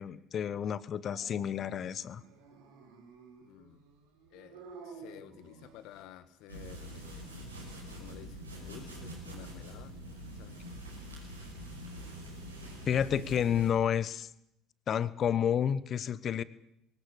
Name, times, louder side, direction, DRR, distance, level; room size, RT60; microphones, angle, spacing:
voice 1, 0.0-2.2 12.9-14.3 14.9-16.4, left 9 dB, 45° left, 18 dB, 1.1 m, -30 dB
Dog, 1.1-6.2, right 4 dB, 70° right, 4.3 m, -52 dB
voice 2, 3.4-3.8 4.3-7.4 7.8-10.0 10.3-10.6, left 11 dB, 60° left, 12 dB, 1.8 m, -52 dB
sound 1, 6.5-13.7, equal, 90° right, 5.1 m, -45 dB
22.5 x 18.0 x 8.3 m, 0.80 s
figure-of-eight pair, 60°, 0 cm